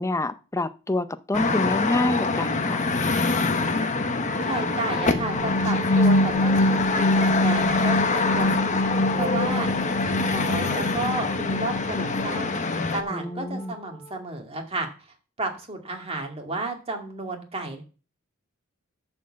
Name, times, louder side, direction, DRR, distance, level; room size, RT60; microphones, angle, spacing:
voice 1, 0.0-2.8 13.1-13.8, left 2 dB, 15° left, 0.5 m, -27 dB
sound 1, 1.3-13.0, left 3 dB, 35° left, 1.0 m, -25 dB
Wind instrument woodwind instrument, 4.2-14.2, right 3 dB, 50° right, 2.9 m, -40 dB
voice 2, 4.4-8.7 9.1-9.7 10.0-12.6 12.9-14.9 15.4-17.8, right 2 dB, 30° right, 2.1 m, -32 dB
sound 2, 5.0-12.8, left 1 dB, 55° left, 0.7 m, -25 dB
11.0 x 4.5 x 7.3 m
head